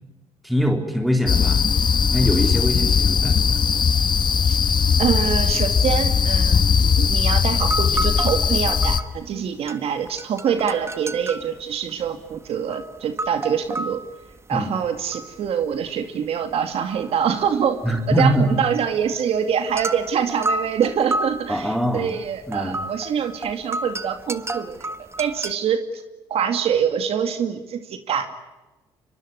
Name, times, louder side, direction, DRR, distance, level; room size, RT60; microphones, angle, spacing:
voice 1, 0.4-1.6 2.1-3.6 4.9-5.0 14.5-14.7 17.8-18.6 21.5-22.1 22.5-22.8, equal, ahead, 4 dB, 3.7 m, -23 dB
sound 1, 1.3-9.0, left 6 dB, 45° left, 1.5 m, -19 dB
voice 2, 5.0-14.0 14.5-17.8 18.1-26.0 26.3-28.4, right 7 dB, 65° right, 7 dB, 2.3 m, -25 dB
sound 2, 7.0-7.1 7.4-9.4 9.7-16.0 16.2-25.5, right 2 dB, 25° right, 1.5 m, -32 dB
23.5 x 23.5 x 9.8 m, 1.1 s
supercardioid pair, 75°, 11 cm